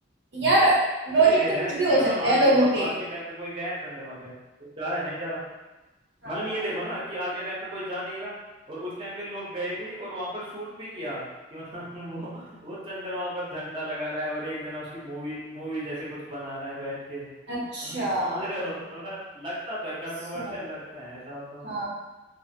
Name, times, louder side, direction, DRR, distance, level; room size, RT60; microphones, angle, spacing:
voice 1, 0.3-0.8 1.1-1.4 1.7-2.9 6.2-6.4 17.5-18.5 20.3-20.6 21.6-21.9, right 2 dB, 70° right, -6 dB, 0.7 m, -22 dB
voice 2, 1.2-4.3 4.6-5.4 6.2-8.4 8.7-11.3 11.5-17.3 17.8-21.7, equal, 30° right, -8 dB, 0.8 m, -34 dB
2.5 x 2.5 x 2.8 m, 1.1 s
head